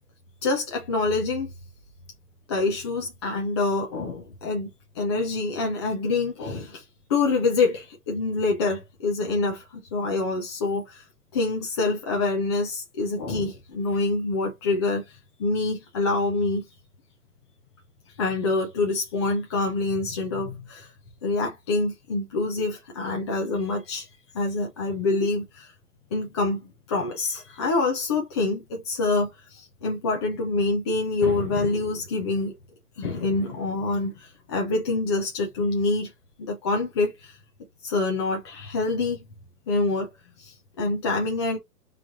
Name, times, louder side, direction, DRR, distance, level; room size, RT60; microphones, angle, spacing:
voice 1, 0.4-1.5 2.5-4.7 4.9-6.8 7.1-11.0 11.3-16.7 18.2-20.9 21.2-24.1 24.3-25.7 26.1-32.5 33.0-36.1 36.4-37.4 37.8-39.3 39.7-40.1 40.4-41.6, left 3 dB, 20° left, 0.4 m, -26 dB
3.2 x 2.4 x 3.6 m
hypercardioid pair, 135°, 48 cm